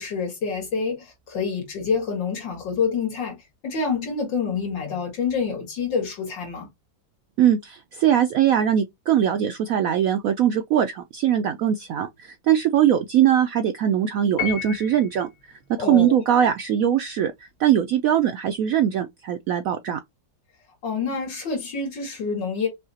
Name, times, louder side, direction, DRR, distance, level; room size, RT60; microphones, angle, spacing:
voice 1, 0.0-3.4 3.6-6.7 15.8-16.2 20.8-22.7, left 5 dB, 80° left, 2.5 m, -27 dB
voice 2, 7.4-15.3 15.7-20.0, right 10 dB, 75° right, 0.8 m, -21 dB
Piano, 14.4-15.3, left 8 dB, 60° left, 2.6 m, -31 dB
5.5 x 2.9 x 2.8 m
omnidirectional pair, 2.0 m